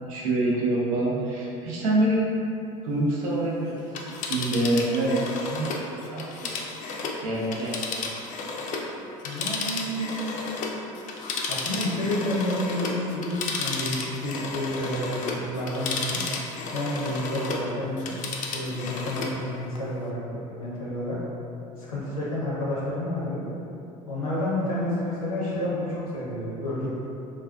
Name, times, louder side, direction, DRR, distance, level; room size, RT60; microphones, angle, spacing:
voice 1, 0.0-2.3 2.8-3.9 4.3-6.6 7.2-8.0, right 1 dB, 80° right, -4 dB, 0.5 m, -26 dB
Telephone, 3.8-8.9 9.2-17.7 18.0-19.4 19.7-19.8, left 4 dB, 45° left, 0.4 m, -33 dB
voice 2, 9.2-10.5 11.5-16.2 16.7-18.1 18.5-21.2 21.8-23.4 24.1-26.9, left 1 dB, 90° left, -7 dB, 0.7 m, -30 dB
2.3 x 2.2 x 2.3 m, 2.8 s
hypercardioid pair, 70°, 18 cm